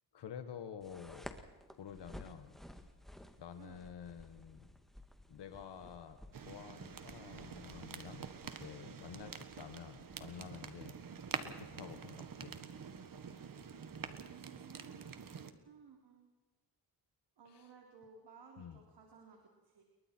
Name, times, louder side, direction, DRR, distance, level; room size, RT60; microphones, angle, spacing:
voice 1, 0.1-1.3 1.7-2.6 3.4-4.7 5.3-11.0 11.4-12.6 17.4-17.7 18.6-18.8, left 8 dB, 85° left, 8 dB, 1.5 m, -50 dB
sound 1, 0.8-14.3, left 1 dB, ahead, 1.9 m, -57 dB
sound 2, 6.3-15.5, right 6 dB, 55° right, 1.6 m, -47 dB
voice 2, 14.2-15.1 15.6-16.3 17.4-19.8, right 6 dB, 80° right, 1 dB, 3.5 m, -58 dB
28.5 x 23.0 x 4.5 m, 1.2 s
cardioid pair, 100°, 40 cm